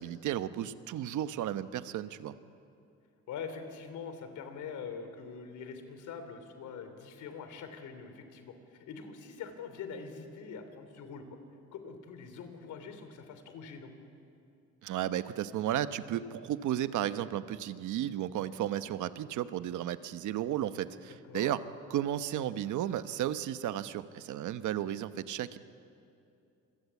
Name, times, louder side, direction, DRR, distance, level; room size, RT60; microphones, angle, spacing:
voice 1, 0.0-2.3 14.8-21.6 21.9-25.6, right 11 dB, 80° right, 12 dB, 1.0 m, -34 dB
voice 2, 3.3-11.4 11.7-13.9 21.0-21.5, left 6 dB, 80° left, 8 dB, 3.2 m, -44 dB
27.0 x 23.0 x 8.3 m, 2.7 s
cardioid pair, 120°, 29 cm